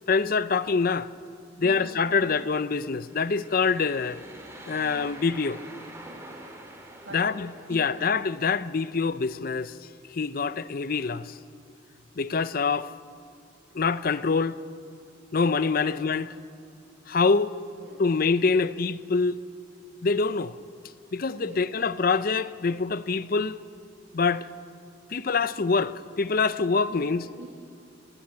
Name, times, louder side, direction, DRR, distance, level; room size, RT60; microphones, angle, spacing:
voice 1, 0.1-1.1 1.6-4.2 4.7-5.6 7.1-9.8 10.1-11.4 12.2-12.9 13.7-14.6 15.3-16.3 17.1-17.5 18.0-19.4 20.0-20.6 21.1-23.6 24.1-24.5 25.1-27.2, left 4 dB, 50° left, 0.5 m, -25 dB
voice 2, 1.6-2.4 7.0-7.3 7.7-8.0 15.8-16.0 17.8-18.0 21.4-21.7 26.8-27.5, right 2 dB, 70° right, 1.9 m, -44 dB
sound 1, 2.9-8.3, right 1 dB, 15° right, 2.7 m, -46 dB
19.5 x 19.0 x 8.8 m
head